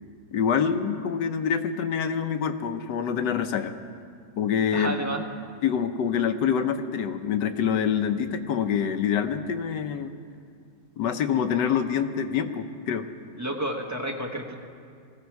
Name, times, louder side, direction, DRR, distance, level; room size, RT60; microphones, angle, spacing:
voice 1, 0.3-3.7 4.4-4.9 5.6-10.1 11.0-13.1, left 7 dB, 80° left, 8 dB, 1.4 m, -26 dB
voice 2, 4.7-5.2 13.4-14.5, right 1 dB, 10° right, 1 dB, 1.0 m, -30 dB
20.0 x 14.5 x 4.7 m, 2.2 s
omnidirectional pair, 1.9 m